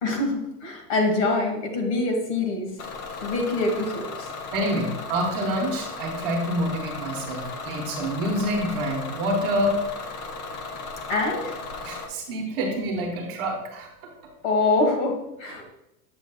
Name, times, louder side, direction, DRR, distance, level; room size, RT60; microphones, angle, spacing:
voice 1, 0.0-2.7 3.2-4.3 11.1-11.6 14.4-15.7, left 2 dB, 45° left, 2 dB, 1.6 m, -25 dB
Bus / Engine, 2.8-12.1, left 3 dB, 30° left, 0.5 m, -36 dB
voice 2, 4.5-9.8 11.8-13.9, equal, 40° right, 1 dB, 1.1 m, -27 dB
7.7 x 7.1 x 2.3 m, 0.86 s
supercardioid pair, 165°, 45 cm